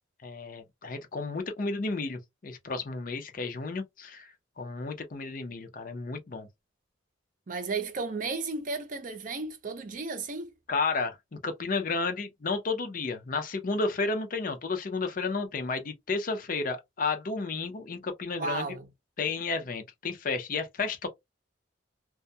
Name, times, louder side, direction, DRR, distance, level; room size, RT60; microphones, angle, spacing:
voice 1, 0.2-4.3 4.6-6.5 10.7-18.7 19.2-21.1, left 4 dB, 45° left, 0.5 m, -32 dB
voice 2, 7.5-10.5 18.4-18.9, right 4 dB, 45° right, 0.5 m, -34 dB
2.2 x 2.1 x 2.6 m
head